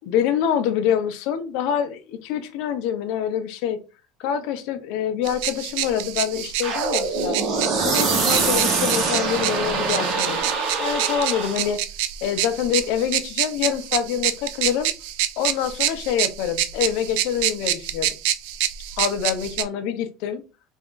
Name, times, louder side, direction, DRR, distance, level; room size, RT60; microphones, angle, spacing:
voice 1, 0.1-3.8 4.2-7.4 7.8-10.4 10.8-11.8 12.2-14.9 15.4-18.1 19.0-20.4, left 9 dB, 60° left, 0.6 m, -25 dB
sound 1, 5.2-19.6, right 12 dB, 70° right, 0.4 m, -27 dB
sound 2, 6.6-11.7, right 4 dB, 40° right, 0.9 m, -24 dB
3.5 x 2.5 x 3.7 m
cardioid pair, 175°, 0 cm